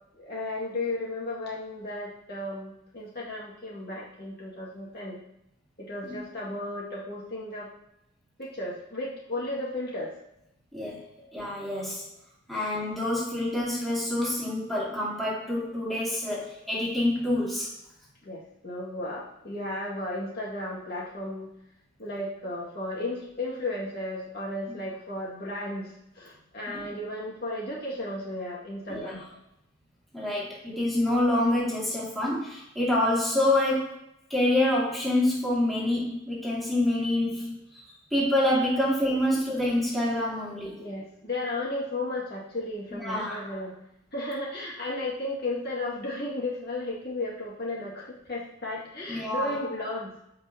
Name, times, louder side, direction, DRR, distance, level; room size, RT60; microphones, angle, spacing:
voice 1, 0.2-5.2 5.8-7.7 8.4-10.1 11.2-11.3 11.7-11.9 12.5-12.7 18.2-21.5 22.0-29.2 30.3-30.4 40.8-43.7 44.1-50.1, left 2 dB, 50° left, -5 dB, 2.0 m, -34 dB
voice 2, 11.3-12.0 12.5-17.7 26.7-26.9 28.9-29.2 30.1-33.9 34.3-37.6 38.1-40.8 43.0-43.4 49.1-49.5, left 1 dB, ahead, -7 dB, 2.3 m, -27 dB
14.0 x 4.9 x 2.8 m, 0.81 s
head